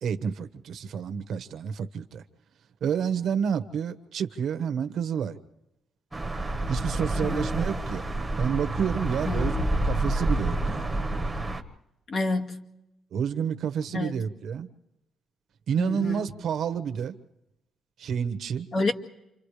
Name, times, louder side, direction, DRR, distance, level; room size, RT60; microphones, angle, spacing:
voice 1, 0.0-2.2 2.8-5.4 6.7-8.0 8.4-11.0 13.1-14.7 15.7-17.2 18.0-18.7, right 7 dB, 65° right, 10 dB, 1.2 m, -29 dB
sound 1, 6.1-11.6, right 1 dB, 10° right, 1.3 m, -28 dB
voice 2, 7.2-7.6 9.2-9.7 12.1-12.7 13.9-14.2 15.8-16.3 18.7-18.9, left 3 dB, 45° left, 3 dB, 2.0 m, -29 dB
29.0 x 27.0 x 3.3 m, 0.91 s
cardioid pair, 145°, 0 cm